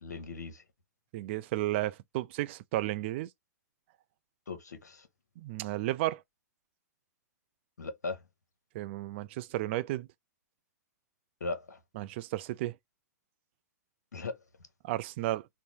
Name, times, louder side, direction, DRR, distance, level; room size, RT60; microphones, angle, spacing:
voice 1, 0.0-0.6 4.5-5.1 7.8-8.2 11.4-11.8 14.1-14.4, left 3 dB, 80° left, 0.8 m, -38 dB
voice 2, 1.1-3.3 5.4-6.2 8.7-10.1 12.0-12.8 14.8-15.5, right 16 dB, 45° right, 0.3 m, -33 dB
3.7 x 2.0 x 2.9 m
hypercardioid pair, 115°, 9 cm